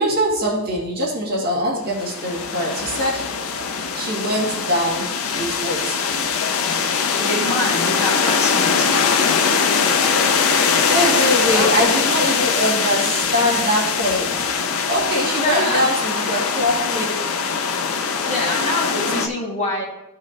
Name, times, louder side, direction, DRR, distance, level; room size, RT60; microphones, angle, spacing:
voice 1, 0.0-3.3 3.9-6.0 10.8-17.3 19.1-19.2, equal, 45° right, -4 dB, 2.0 m, -23 dB
sound 1, 1.9-19.3, left 6 dB, 65° left, 0.6 m, -21 dB
voice 2, 7.1-8.9 11.5-11.7 15.4-15.9 18.2-19.8, left 1 dB, 30° left, -2 dB, 1.6 m, -25 dB
13.5 x 4.7 x 2.9 m, 0.94 s
head